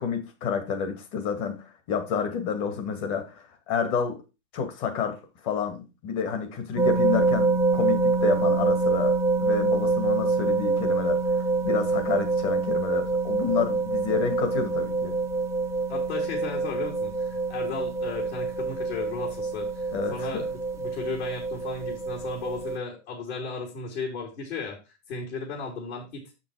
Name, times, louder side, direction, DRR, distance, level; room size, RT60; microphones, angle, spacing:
voice 1, 0.0-4.2 4.5-5.2 5.4-15.2 19.9-20.4, left 6 dB, 35° left, 6 dB, 2.1 m, -29 dB
sound 1, 6.8-22.8, right 3 dB, 5° right, 0.7 m, -26 dB
voice 2, 15.9-24.8 25.1-26.3, left 4 dB, 60° left, -1 dB, 3.9 m, -35 dB
7.1 x 6.1 x 5.0 m, 0.28 s
hypercardioid pair, 140°, 39 cm